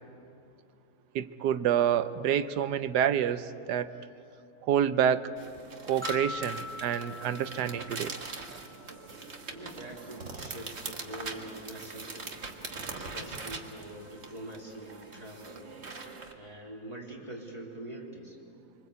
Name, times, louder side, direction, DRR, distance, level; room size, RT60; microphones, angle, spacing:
voice 1, 1.1-3.9 4.6-5.3 5.8-8.1, right 9 dB, 65° right, 12 dB, 1.3 m, -28 dB
sound 1, 5.4-16.3, right 3 dB, 40° right, 1.8 m, -42 dB
sound 2, 6.0-9.1, left 4 dB, 5° left, 0.5 m, -42 dB
voice 2, 9.5-12.3 13.0-15.7 16.3-18.4, right 1 dB, 20° right, -2 dB, 3.4 m, -44 dB
25.5 x 25.0 x 8.3 m, 2.6 s
omnidirectional pair, 2.0 m